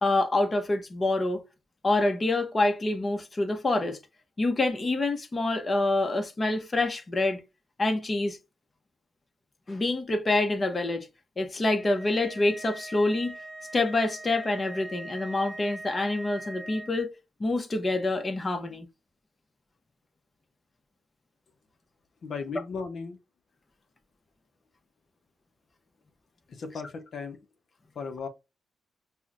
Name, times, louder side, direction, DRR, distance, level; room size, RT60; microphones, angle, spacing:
voice 1, 0.0-1.4 1.8-4.0 4.4-7.4 7.8-8.4 9.7-11.1 11.4-13.4 13.7-17.1 17.4-18.9, left 2 dB, 30° left, 0.8 m, -26 dB
sound 1, 11.8-16.9, right 2 dB, 5° right, 0.8 m, -42 dB
voice 2, 22.2-23.2 26.5-27.4 27.9-28.3, left 4 dB, 60° left, 0.6 m, -36 dB
5.4 x 2.1 x 2.4 m
cardioid pair, 95°, 0 cm